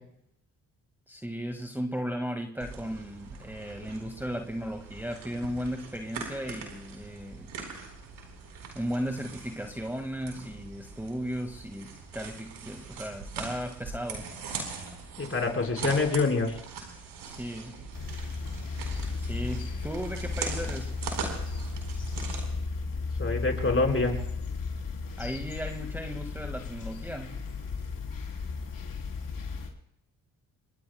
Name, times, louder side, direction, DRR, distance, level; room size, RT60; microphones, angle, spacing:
voice 1, 1.1-7.5 8.8-14.3 17.2-17.8 19.2-21.0 25.2-27.4, equal, 5° right, 1.7 m, -36 dB
sound 1, 2.6-22.5, right 5 dB, 85° right, 4.2 m, -41 dB
voice 2, 15.2-16.5 23.2-24.2, left 3 dB, 35° left, 4.5 m, -26 dB
sound 2, 17.9-29.7, left 4 dB, 55° left, 3.7 m, -35 dB
27.0 x 22.0 x 2.2 m
supercardioid pair, 55°, 39 cm